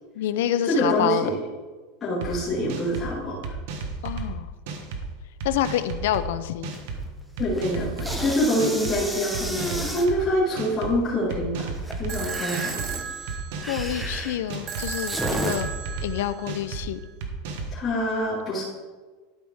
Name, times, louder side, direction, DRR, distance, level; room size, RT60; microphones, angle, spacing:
voice 1, 0.2-1.3 4.0-4.5 5.4-6.7 13.7-15.2 15.4-15.7 16.0-17.0, left 11 dB, 75° left, 12 dB, 0.5 m, -27 dB
voice 2, 0.7-1.4 2.0-3.4 7.4-11.7 12.0-13.0 17.7-18.6, equal, 15° left, -12 dB, 2.9 m, -25 dB
sound 1, 2.2-2.3 2.7-3.1 3.4-4.3 4.7-5.0 5.4-6.2 6.6-7.0 7.4-8.2 8.6-9.0 9.3-10.2 10.6-11.0 11.3-12.2 12.5-12.9 13.3-14.1 14.5-14.9 15.2-16.1 16.5-16.8 17.2-17.7, right 4 dB, 70° right, 1.3 m, -33 dB
sound 2, 6.7-7.1 7.4-10.1 11.7-15.5, equal, 5° right, 0.9 m, -32 dB
sound 3, 12.1-17.1, right 7 dB, 30° right, 0.7 m, -35 dB
12.5 x 5.6 x 3.5 m, 1.3 s
supercardioid pair, 155°, 0 cm